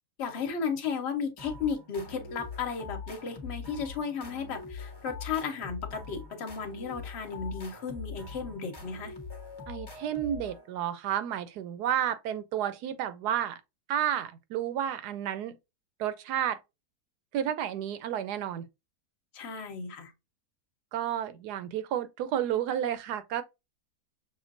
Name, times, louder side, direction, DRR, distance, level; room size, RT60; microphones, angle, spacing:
voice 1, 0.2-9.1 19.3-20.1, left 6 dB, 45° left, 1.1 m, -34 dB
sound 1, 1.4-10.9, left 4 dB, 20° left, 0.8 m, -43 dB
voice 2, 9.7-13.6 13.9-15.6 16.0-16.6 17.3-18.7 20.9-23.4, right 10 dB, 75° right, 1.1 m, -31 dB
6.4 x 2.5 x 2.5 m
omnidirectional pair, 1.7 m